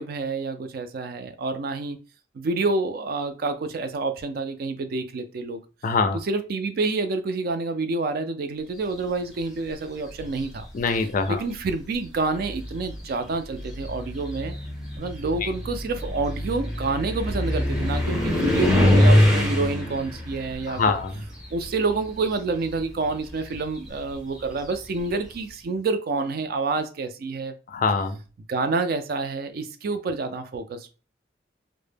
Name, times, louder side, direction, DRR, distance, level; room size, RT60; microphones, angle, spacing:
voice 1, 0.0-2.0 2.3-5.6 6.1-10.7 11.3-14.6 15.0-20.9 21.5-27.5 28.5-30.9, right 3 dB, 55° right, 0.3 m, -28 dB
voice 2, 5.8-6.2 10.7-11.4 20.7-21.1 27.7-28.2, left 4 dB, 45° left, 0.3 m, -23 dB
sound 1, 10.1-10.6 11.6-11.7 12.3-22.2 22.5-25.1, left 1 dB, ahead, 0.6 m, -24 dB
2.1 x 2.0 x 3.2 m
head